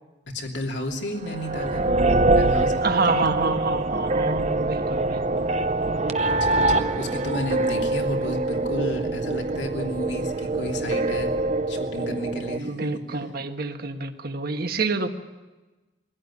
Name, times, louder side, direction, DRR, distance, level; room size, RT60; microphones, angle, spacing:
voice 1, 0.3-2.0 2.3-3.2 6.2-11.3 11.7-12.7, left 1 dB, 75° left, 2 dB, 2.9 m, -32 dB
sound 1, 1.2-12.6, right 2 dB, 40° right, 0.8 m, -24 dB
voice 2, 2.8-5.3 12.6-15.1, right 3 dB, 60° right, 6 dB, 1.6 m, -27 dB
22.5 x 16.5 x 9.9 m, 1.2 s
head